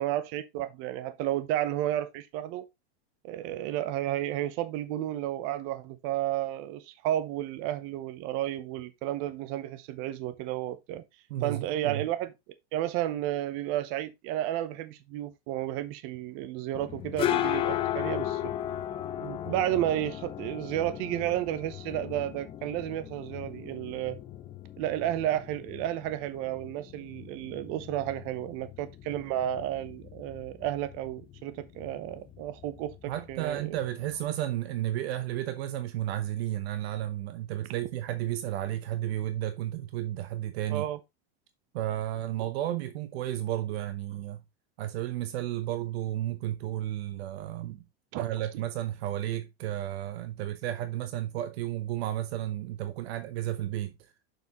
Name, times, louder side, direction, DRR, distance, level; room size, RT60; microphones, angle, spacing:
voice 1, 0.0-2.6 3.2-11.0 11.4-12.3 12.7-18.5 19.2-24.2 24.8-33.8 40.7-41.0 48.1-48.3, right 13 dB, 40° right, 0.8 m, -32 dB
voice 2, 11.3-12.0 33.1-40.9 41.7-44.4 44.8-47.8 48.2-53.9, right 13 dB, 65° right, 0.9 m, -32 dB
sound 1, 16.7-34.2, left 12 dB, 15° left, 0.4 m, -37 dB
6.9 x 6.0 x 3.0 m
supercardioid pair, 160°, 33 cm